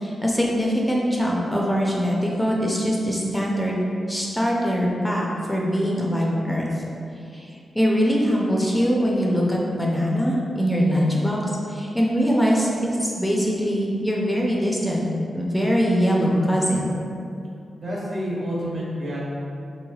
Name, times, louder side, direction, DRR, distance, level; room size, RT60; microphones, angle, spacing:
voice 1, 0.0-3.8 4.1-6.9 7.3-11.4 11.7-15.1 15.3-16.9, equal, 10° left, -3 dB, 0.4 m, -22 dB
voice 2, 17.8-19.2, equal, 60° right, -6 dB, 0.9 m, -28 dB
3.5 x 3.1 x 2.3 m, 2.6 s
cardioid pair, 85°, 0 cm